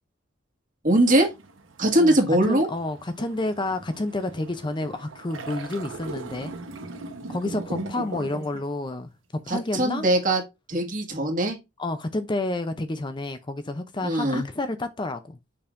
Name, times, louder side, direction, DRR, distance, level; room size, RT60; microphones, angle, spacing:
voice 1, 0.8-1.3 1.8-2.7 9.5-10.4 10.7-11.6 14.0-14.4, right 1 dB, 45° right, 1.7 m, -21 dB
sound 1, 1.0-8.6, right 2 dB, 90° right, 1.0 m, -39 dB
voice 2, 2.4-6.5 7.3-9.1 9.5-10.1 11.8-15.4, left 2 dB, 25° left, 0.5 m, -30 dB
6.9 x 5.4 x 2.5 m
head